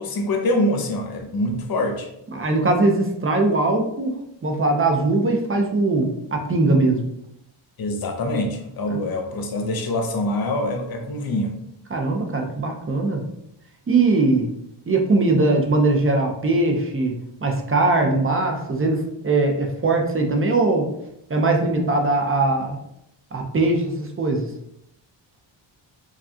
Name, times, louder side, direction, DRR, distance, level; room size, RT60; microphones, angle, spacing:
voice 1, 0.0-2.1 7.8-11.5, left 1 dB, 50° left, 4 dB, 0.7 m, -24 dB
voice 2, 2.3-4.2 4.4-7.0 8.9-9.0 11.9-13.2 13.9-14.5 14.9-17.1 17.4-20.9 21.3-22.8 23.3-24.5, right 2 dB, 25° right, 2 dB, 0.6 m, -20 dB
4.8 x 2.3 x 2.7 m, 0.78 s
wide cardioid pair, 110°, 48 cm